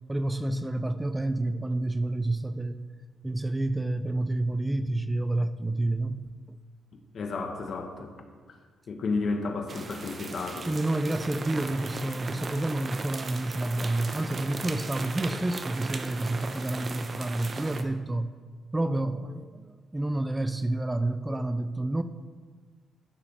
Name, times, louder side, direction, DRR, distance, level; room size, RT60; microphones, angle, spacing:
voice 1, 0.1-2.8 3.2-6.3 10.7-18.3 18.7-22.0, right 2 dB, 15° right, 11 dB, 0.4 m, -29 dB
voice 2, 7.1-8.1 8.9-10.7, left 3 dB, 55° left, 4 dB, 1.4 m, -32 dB
sound 1, 9.7-17.8, right 3 dB, 40° right, 0.8 m, -38 dB
15.0 x 6.6 x 3.6 m, 1.5 s
cardioid pair, 90°, 0 cm